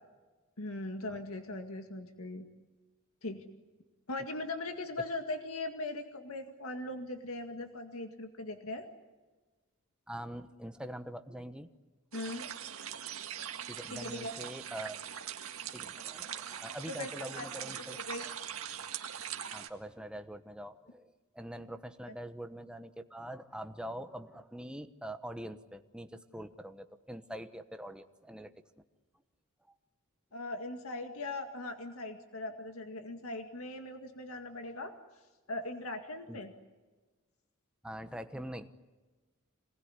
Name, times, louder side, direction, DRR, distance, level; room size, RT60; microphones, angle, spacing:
voice 1, 0.6-2.5 3.2-3.4 4.1-8.9 12.1-12.4 13.9-14.3 16.9-17.5 17.9-18.3 30.3-34.9 35.5-36.5, left 2 dB, 75° left, 5 dB, 2.0 m, -40 dB
voice 2, 10.1-11.7 13.7-15.0 15.7-18.0 19.5-28.5 36.3-36.4 37.8-38.7, right 1 dB, 5° right, 7 dB, 1.2 m, -44 dB
sound 1, 12.1-19.7, right 9 dB, 75° right, 1.8 m, -42 dB
27.0 x 20.0 x 9.8 m, 1.3 s
head